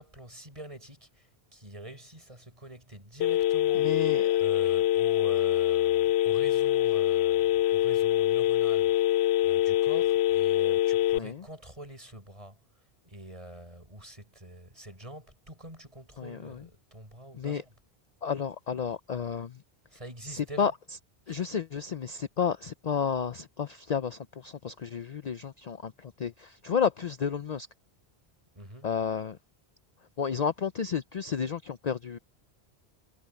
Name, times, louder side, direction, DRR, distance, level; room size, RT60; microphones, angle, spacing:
voice 1, 0.0-4.1 4.4-17.7 19.9-20.7 21.3-21.4 28.5-28.9, right 1 dB, 30° right, 6.8 m, -46 dB
Telephone, 3.2-11.2, left 11 dB, 85° left, 0.8 m, -24 dB
voice 2, 3.7-4.4 11.1-11.4 16.2-16.7 17.3-17.6 18.2-19.6 20.3-20.7 21.3-27.7 28.8-29.4 30.2-32.2, left 7 dB, 45° left, 0.6 m, -31 dB
omnidirectional pair, 1.1 m